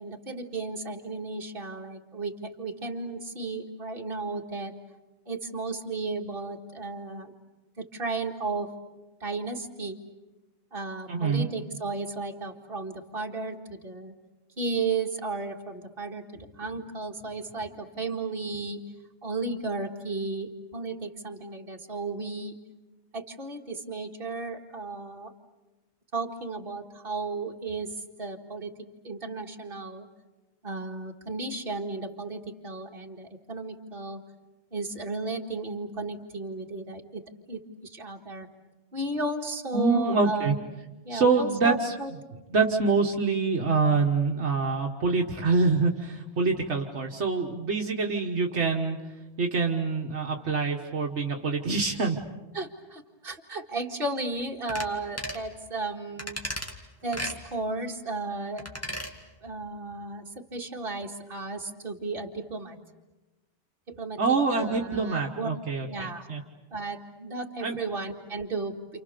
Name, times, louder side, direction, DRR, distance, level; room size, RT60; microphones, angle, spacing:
voice 1, 0.0-4.7 5.3-7.3 7.8-8.7 9.2-10.0 10.7-14.1 14.6-18.8 19.2-22.5 23.1-25.3 26.1-28.7 29.0-30.1 30.6-34.2 34.7-37.2 37.5-38.5 38.9-40.5 41.0-42.1 52.5-56.4 57.0-58.6 59.4-62.8 63.9-64.2 64.5-65.5 65.9-66.3 66.7-68.8, right 3 dB, 50° right, 1 dB, 2.3 m, -34 dB
voice 2, 11.1-11.5 39.7-40.6 41.1-41.9 42.5-49.0 49.4-52.2 64.2-66.4 67.6-67.8, right 4 dB, 75° right, 1 dB, 1.7 m, -25 dB
sound 1, 54.7-54.9 55.2-55.4 56.2-56.7 57.1-57.4 58.6-59.1 59.5-59.6, equal, 10° left, 2.2 m, -35 dB
29.5 x 28.5 x 6.8 m, 1.1 s
omnidirectional pair, 1.2 m